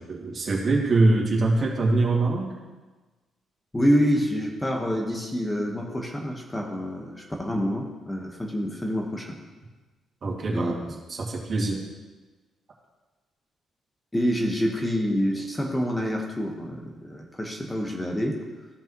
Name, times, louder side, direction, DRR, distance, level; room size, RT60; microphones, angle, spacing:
voice 1, 0.0-2.5 10.2-10.8 11.1-11.8, right 2 dB, 45° right, -2 dB, 2.2 m, -23 dB
voice 2, 3.7-9.4 10.5-10.7 14.1-18.4, equal, 15° left, 1 dB, 1.3 m, -27 dB
16.0 x 5.4 x 3.1 m, 1.3 s
cardioid pair, 90°, 0 cm